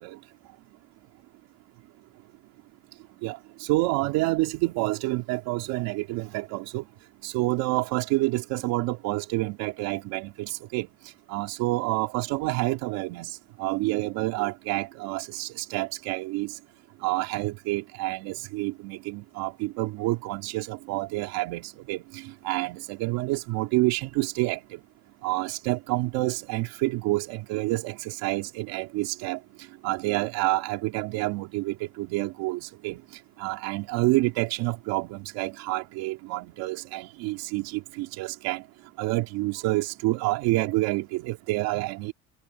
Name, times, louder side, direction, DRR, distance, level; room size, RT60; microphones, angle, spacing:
voice 1, 3.2-6.8 7.2-16.6 17.0-24.8 25.2-33.0 33.4-38.6 39.0-42.1, right 20 dB, 80° right, 2.7 m, -28 dB
supercardioid pair, 95°, 35 cm